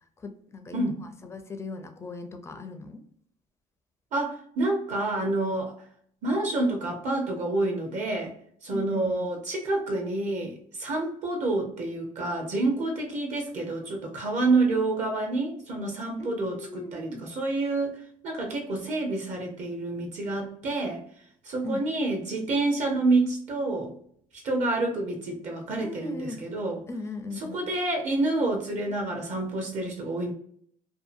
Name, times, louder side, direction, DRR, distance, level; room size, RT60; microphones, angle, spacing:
voice 1, 0.2-3.0 8.7-9.3 16.2-17.2 21.6-21.9 25.8-26.5 26.9-27.7, left 2 dB, 20° left, 6 dB, 0.4 m, -38 dB
voice 2, 4.1-5.7 6.2-8.3 8.6-21.0 21.4-23.9 24.4-26.8 27.4-30.3, right 2 dB, 55° right, 2 dB, 0.7 m, -28 dB
2.7 x 2.4 x 2.4 m, 0.63 s
cardioid pair, 145°, 15 cm